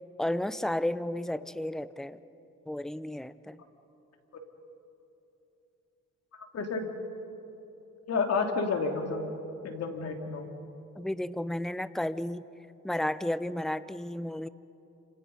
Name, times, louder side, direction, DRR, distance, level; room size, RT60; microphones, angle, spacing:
voice 1, 0.2-2.2 2.7-3.6 11.0-12.4 12.8-14.5, left 1 dB, ahead, 15 dB, 0.7 m, -32 dB
voice 2, 8.1-9.3 9.6-10.5, left 4 dB, 55° left, 3 dB, 3.1 m, -30 dB
29.5 x 27.0 x 5.6 m, 2.9 s
cardioid pair, 90°, 30 cm